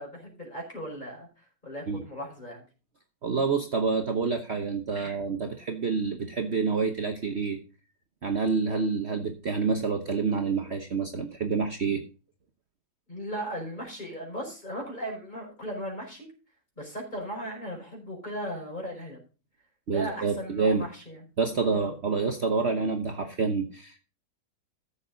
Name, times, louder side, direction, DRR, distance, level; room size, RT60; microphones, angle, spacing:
voice 1, 0.0-2.6 4.9-5.2 13.1-16.3 16.8-19.2 19.9-21.2 21.7-22.0, equal, 25° left, 0 dB, 5.1 m, -37 dB
voice 2, 3.2-7.6 8.2-12.0 19.9-20.8 21.4-24.0, right 4 dB, 45° right, 5 dB, 1.2 m, -28 dB
14.5 x 7.2 x 4.0 m, 0.34 s
omnidirectional pair, 1.7 m